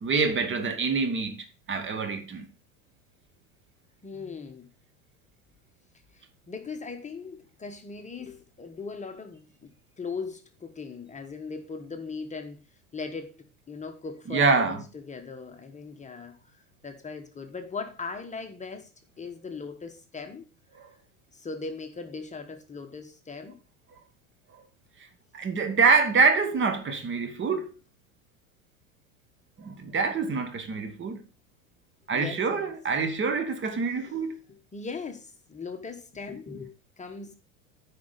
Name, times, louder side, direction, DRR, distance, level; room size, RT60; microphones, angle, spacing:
voice 1, 0.0-2.5 14.3-14.8 20.8-20.9 25.3-27.7 29.6-31.2 32.1-34.3, right 4 dB, 30° right, 1.5 m, -26 dB
voice 2, 4.0-4.7 6.1-9.7 10.0-12.6 12.9-13.3 13.7-18.9 19.2-20.5 21.3-23.6 32.1-32.7 33.9-37.3, left 4 dB, 20° left, 1.3 m, -39 dB
9.3 x 5.1 x 5.1 m
hypercardioid pair, 85°, 39 cm